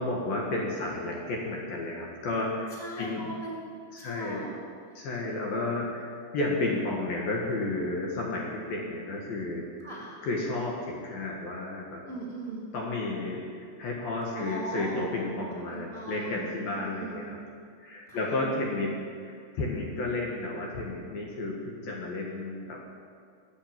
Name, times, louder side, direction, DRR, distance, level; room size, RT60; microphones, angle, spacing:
voice 1, 0.0-2.7 3.0-3.3 3.9-4.4 5.0-9.7 10.2-12.0 12.7-17.4 17.8-19.0 19.2-22.8, left 2 dB, 60° left, -2 dB, 2.9 m, -32 dB
voice 2, 2.7-3.6 4.0-4.6 9.8-10.2 12.1-12.7 14.3-15.1 15.7-16.4 16.7-17.3 18.1-18.4, right 1 dB, 25° right, -6 dB, 1.7 m, -39 dB
21.5 x 8.4 x 7.5 m, 2.2 s
omnidirectional pair, 5.7 m